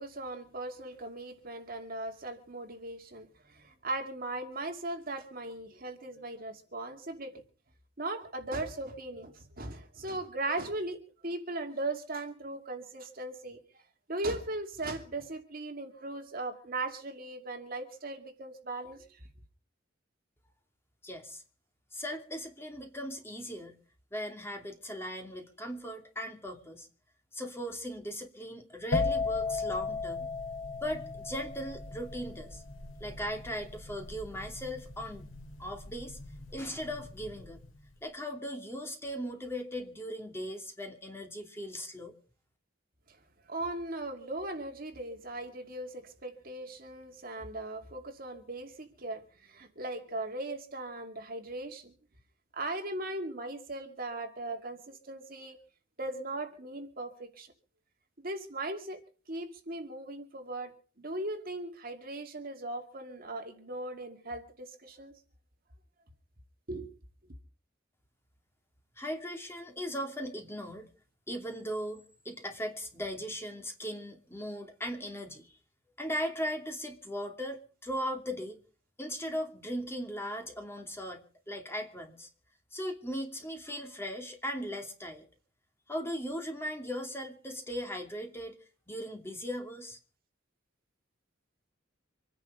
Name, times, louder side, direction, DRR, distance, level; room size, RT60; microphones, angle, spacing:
voice 1, 0.0-7.4 8.0-11.0 11.2-13.6 14.1-19.2 43.5-51.9 52.5-55.6 56.0-57.5 58.2-59.0 59.3-60.7 61.0-65.1 66.7-66.9, right 2 dB, 50° right, 5 dB, 2.5 m, -38 dB
voice 2, 21.0-21.4 21.9-23.8 24.1-26.9 27.3-30.3 30.8-32.6 33.0-35.3 35.6-36.2 36.5-37.6 38.0-42.2 69.0-70.9 71.3-75.6 76.0-78.6 79.0-82.3 82.7-85.2 85.9-88.6 88.9-90.0, equal, 10° left, 4 dB, 2.7 m, -38 dB
sound 1, 28.9-36.5 36.8-37.2, left 4 dB, 85° left, 2.3 m, -34 dB
26.0 x 10.5 x 5.1 m, 0.39 s
head